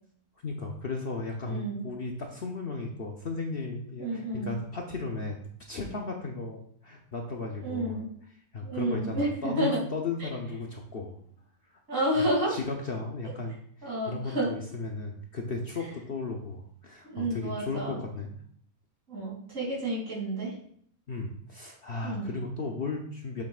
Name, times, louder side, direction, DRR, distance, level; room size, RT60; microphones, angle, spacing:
voice 1, 0.4-5.4 5.7-8.0 8.5-11.2 12.5-18.3 21.1-23.4, left 3 dB, 50° left, 1 dB, 0.8 m, -35 dB
voice 2, 1.4-1.8 4.0-4.6 7.6-8.1 8.6-9.8 10.2-10.3 11.9-12.5 13.8-14.5 17.0-18.0 19.1-20.5 22.0-22.3, right 1 dB, 60° right, -5 dB, 3.3 m, -30 dB
7.6 x 7.1 x 2.4 m, 0.63 s
omnidirectional pair, 1.5 m